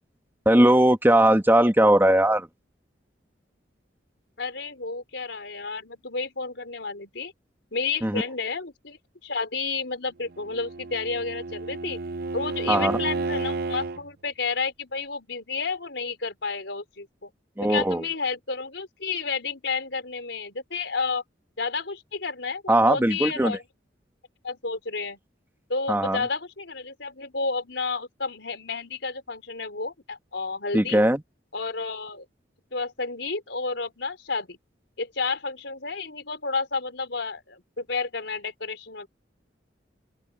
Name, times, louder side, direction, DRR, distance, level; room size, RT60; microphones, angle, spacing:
voice 1, 0.4-2.5 8.0-8.2 12.7-13.0 17.6-18.0 22.7-23.6 25.9-26.2 30.7-31.2, right 1 dB, 10° right, 1.5 m, -19 dB
voice 2, 4.4-7.3 7.7-12.0 12.3-17.3 17.6-21.2 21.6-23.6 24.4-25.2 25.7-31.0 31.5-32.3 32.7-34.6 35.0-39.1, left 4 dB, 75° left, 4.3 m, -31 dB
Bowed string instrument, 10.3-14.0, right 3 dB, 55° right, 0.5 m, -31 dB
head